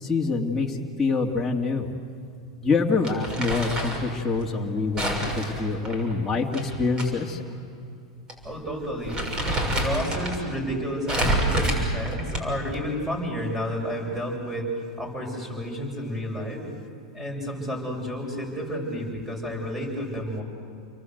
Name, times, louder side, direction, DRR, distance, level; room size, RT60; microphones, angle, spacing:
voice 1, 0.0-1.9 2.6-7.4, left 4 dB, 10° left, -3 dB, 2.5 m, -25 dB
Crumpling crinkling, 3.0-4.1 5.0-7.1 7.4-7.5 8.3-8.5 8.8-10.4 11.1-12.7, right 1 dB, 30° right, 6.6 m, -27 dB
voice 2, 8.4-9.2 9.7-16.6 17.1-20.4, equal, 10° right, 1 dB, 7.9 m, -31 dB
30.0 x 23.0 x 8.1 m, 2.6 s
hypercardioid pair, 115°, 3 cm